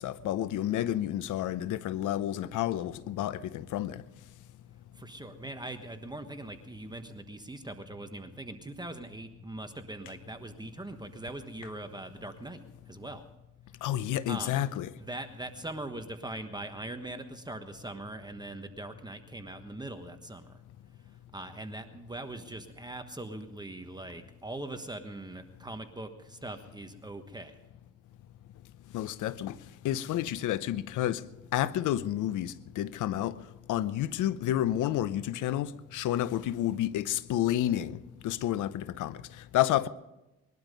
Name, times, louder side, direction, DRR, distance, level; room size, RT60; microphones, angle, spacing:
voice 1, 0.0-4.0 13.8-14.9 28.9-29.6 29.8-31.2 31.5-33.3 33.7-38.0 38.2-39.2 39.5-39.9, left 12 dB, 85° left, 0.8 m, -30 dB
voice 2, 4.9-12.6 12.9-13.3 14.3-14.6 15.0-20.6 21.3-27.6, right 2 dB, 15° right, 1.3 m, -41 dB
21.5 x 12.0 x 5.3 m
cardioid pair, 90°, 30 cm